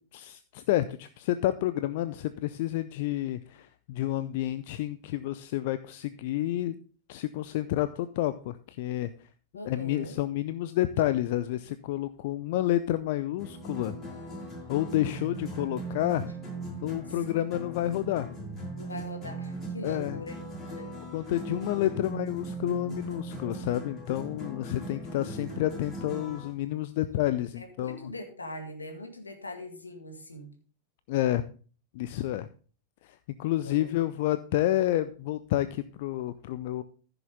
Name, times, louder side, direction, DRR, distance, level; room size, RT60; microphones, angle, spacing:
voice 1, 0.1-6.7 7.1-9.1 9.6-14.0 14.7-16.3 16.8-18.3 19.8-20.2 21.1-28.1 31.1-31.4 31.9-32.5 33.4-36.8, left 14 dB, 50° left, 13 dB, 0.5 m, -29 dB
voice 2, 9.5-10.2 17.1-17.4 18.8-20.4 20.7-20.9 27.6-30.5 33.6-33.9, left 1 dB, 80° left, 5 dB, 2.0 m, -42 dB
sound 1, 13.4-26.5, right 2 dB, 30° left, 5.1 m, -39 dB
14.5 x 6.9 x 3.6 m, 0.39 s
figure-of-eight pair, 90°, 0 cm